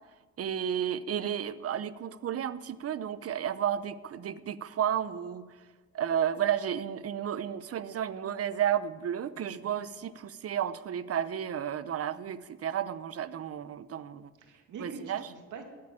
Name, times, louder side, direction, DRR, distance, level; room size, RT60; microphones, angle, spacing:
voice 1, 0.4-5.5 5.9-14.3 14.8-15.2, right 9 dB, 50° right, 16 dB, 0.8 m, -32 dB
voice 2, 9.4-9.8 14.4-15.6, right 4 dB, 80° right, 4 dB, 2.5 m, -45 dB
15.5 x 8.8 x 8.9 m, 1.4 s
cardioid pair, 90°, 30 cm